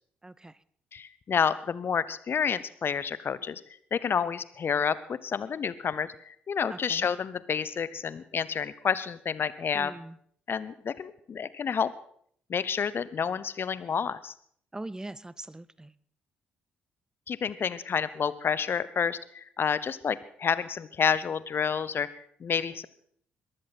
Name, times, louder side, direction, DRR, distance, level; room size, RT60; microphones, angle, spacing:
voice 1, 0.2-0.6 6.7-7.1 9.7-10.2 14.7-15.9, right 2 dB, 15° right, 19 dB, 0.8 m, -41 dB
voice 2, 0.9-3.6 3.9-9.9 10.5-11.9 12.5-14.3 17.3-22.9, left 7 dB, 45° left, 17 dB, 1.0 m, -29 dB
22.0 x 13.0 x 4.3 m, 0.63 s
figure-of-eight pair, 40°, 5 cm